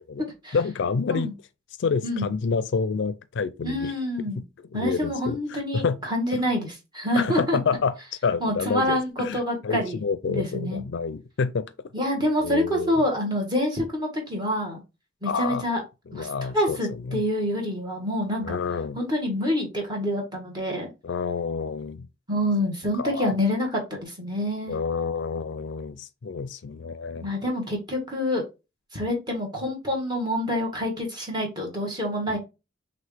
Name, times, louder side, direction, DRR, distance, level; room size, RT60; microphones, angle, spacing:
voice 1, 0.5-1.3 1.8-3.9 4.2-4.3 4.7-6.0 6.3-6.4 7.1-7.9 8.2-11.7 12.4-13.0 15.2-15.6 16.1-17.2 18.4-19.0 21.0-22.1 22.9-23.3 24.7-27.3 32.3-32.4, left 5 dB, 60° left, 0.4 m, -28 dB
voice 2, 3.6-4.4 4.7-7.6 8.4-10.0 10.3-10.8 11.9-14.8 15.2-15.8 16.1-16.3 16.5-18.6 18.9-20.9 22.3-24.8 27.2-28.4 28.9-32.4, left 1 dB, 20° right, 1.6 m, -27 dB
6.1 x 2.6 x 3.3 m
head